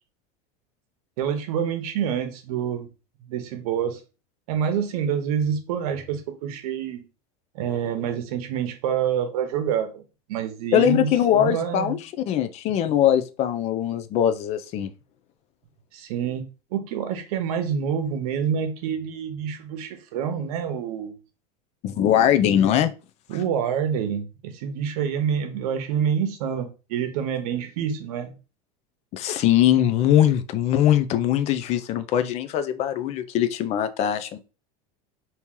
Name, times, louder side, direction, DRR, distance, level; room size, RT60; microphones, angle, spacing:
voice 1, 1.2-2.9 3.3-4.0 4.5-7.1 7.5-10.0 10.3-11.9 15.9-21.2 23.3-28.3, right 8 dB, 75° right, 0.9 m, -27 dB
voice 2, 10.7-14.9 21.8-22.9 29.1-34.4, left 10 dB, 35° left, 0.4 m, -21 dB
2.9 x 2.8 x 3.6 m
supercardioid pair, 145°, 19 cm